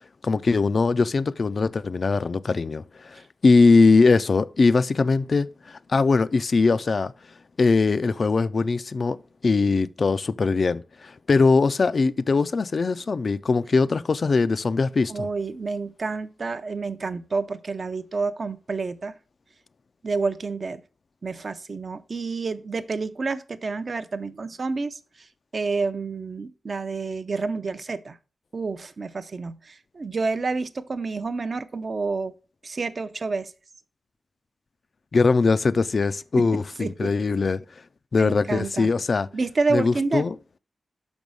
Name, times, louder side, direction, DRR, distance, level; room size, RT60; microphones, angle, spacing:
voice 1, 0.2-7.1 7.6-9.2 9.4-15.3 35.1-37.6 38.1-39.3 39.7-40.3, left 4 dB, 45° left, 0.4 m, -21 dB
voice 2, 15.1-19.2 20.0-20.8 21.2-28.2 28.5-32.3 32.6-33.5 36.4-36.5 36.8-37.1 38.1-38.9 39.3-40.3, right 4 dB, 45° right, 0.6 m, -29 dB
6.2 x 5.3 x 6.2 m
wide cardioid pair, 120°, 0 cm